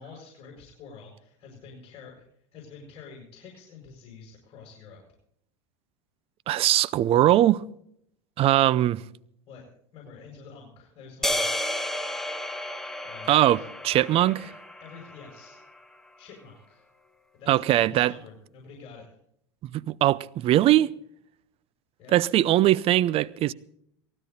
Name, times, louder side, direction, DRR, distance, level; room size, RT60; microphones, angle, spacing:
voice 1, 0.0-2.2 2.5-5.0 9.5-9.6 9.9-11.5 13.0-13.7 14.1-14.3 14.8-15.6 16.2-16.8 17.3-19.0 22.0-22.1, left 5 dB, 40° left, 7.0 m, -47 dB
voice 2, 6.5-7.6 8.4-9.0 13.3-14.4 17.5-18.1 19.7-20.9 22.1-23.5, right 13 dB, 40° right, 0.7 m, -21 dB
sound 1, 11.2-15.6, left 1 dB, 5° left, 1.6 m, -32 dB
18.5 x 16.0 x 4.1 m
supercardioid pair, 105°, 15 cm